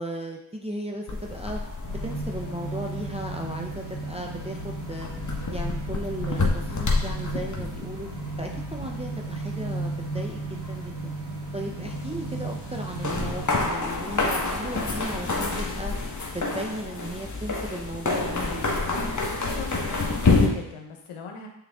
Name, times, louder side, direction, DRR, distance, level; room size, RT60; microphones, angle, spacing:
voice 1, 0.0-1.6 2.0-8.1 8.4-11.2 11.5-13.4 13.7-16.0 16.3-18.8, right 1 dB, 15° right, 0 dB, 0.7 m, -36 dB
sound 1, 1.1-20.5, left 3 dB, 35° left, 1.3 m, -29 dB
sound 2, 1.8-13.5, right 3 dB, 80° right, 1.4 m, -35 dB
voice 2, 19.4-21.5, left 5 dB, 90° left, 3 dB, 1.1 m, -40 dB
6.8 x 4.0 x 3.5 m, 0.80 s
cardioid pair, 50°, 48 cm